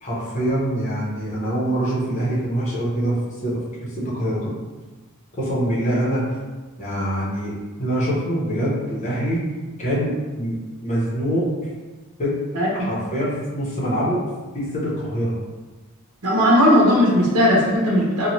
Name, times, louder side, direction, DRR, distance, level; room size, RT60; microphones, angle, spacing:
voice 1, 0.0-3.1 3.4-3.6 4.0-4.5 5.4-6.2 6.8-9.4 9.8-11.5 12.2-12.4 12.8-14.2 14.5-15.4, right 1 dB, 35° left, -7 dB, 0.8 m, -24 dB
voice 2, 16.2-18.3, equal, 80° right, -4 dB, 0.8 m, -17 dB
3.0 x 2.3 x 2.7 m, 1.3 s
head